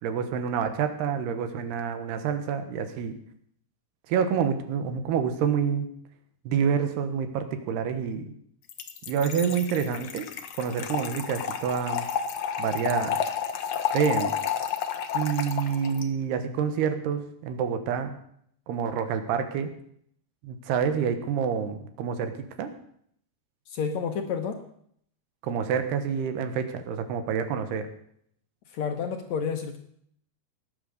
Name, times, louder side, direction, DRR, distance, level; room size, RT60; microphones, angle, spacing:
voice 1, 0.0-3.1 4.1-5.9 6.4-8.3 9.1-10.3 10.6-12.1 12.6-13.2 13.9-14.3 15.1-18.2 18.7-19.7 20.4-22.3 22.6-22.7 25.4-27.9, right 7 dB, 80° right, 8 dB, 3.3 m, -27 dB
Trickle dribble / Fill (with liquid), 8.7-16.0, left 8 dB, 90° left, 1.4 m, -31 dB
voice 2, 23.7-24.6 28.7-29.8, left 6 dB, 70° left, 5 dB, 1.7 m, -30 dB
18.0 x 9.3 x 6.7 m, 0.68 s
omnidirectional pair, 4.7 m